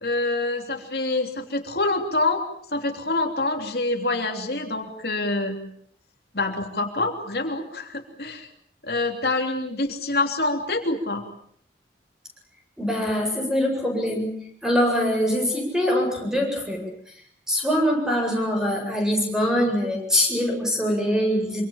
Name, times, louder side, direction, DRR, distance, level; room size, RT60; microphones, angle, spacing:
voice 1, 0.0-2.4 2.7-5.6 6.3-8.5 8.8-11.2, left 2 dB, 60° left, 3 dB, 3.3 m, -26 dB
voice 2, 12.8-14.3 14.6-16.8 17.5-21.6, equal, 5° right, 2 dB, 7.9 m, -23 dB
26.5 x 26.0 x 7.3 m, 0.63 s
head